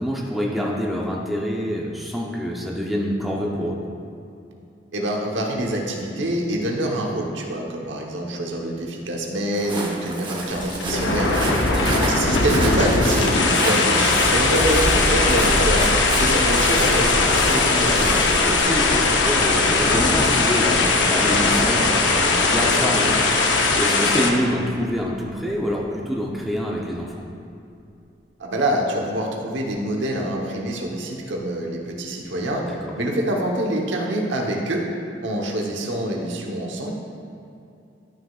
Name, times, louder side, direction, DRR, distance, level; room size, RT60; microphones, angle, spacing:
voice 1, 0.0-3.8 11.6-12.1 18.4-27.2 32.7-32.9, equal, ahead, -3 dB, 0.6 m, -26 dB
voice 2, 4.9-11.3 11.8-18.2 28.4-32.7 33.0-34.8 35.2-36.9, right 1 dB, 85° right, 0 dB, 1.1 m, -26 dB
Walk footsteps, 9.5-18.6, right 2 dB, 25° right, 1.0 m, -30 dB
sound 1, 10.4-24.3, left 3 dB, 75° left, 0.7 m, -19 dB
sound 2, 13.9-25.9, equal, 35° left, 0.8 m, -30 dB
11.5 x 6.3 x 2.4 m, 2.7 s
head